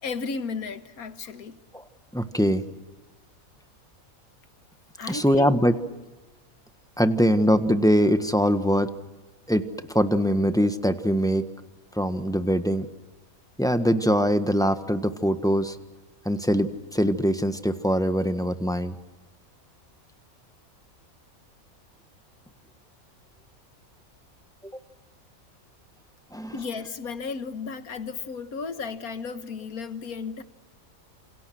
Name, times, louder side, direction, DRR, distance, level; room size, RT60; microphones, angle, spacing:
voice 1, 0.0-1.6 5.0-5.6 26.5-30.4, left 5 dB, 90° left, 1.9 m, -34 dB
voice 2, 2.1-2.6 5.1-5.7 7.0-8.9 9.5-9.6 9.9-11.5 11.9-12.9 13.6-15.8 16.2-18.9 24.6-24.7 26.3-26.5, equal, 5° left, 1.3 m, -22 dB
29.5 x 28.0 x 6.3 m
omnidirectional pair, 1.5 m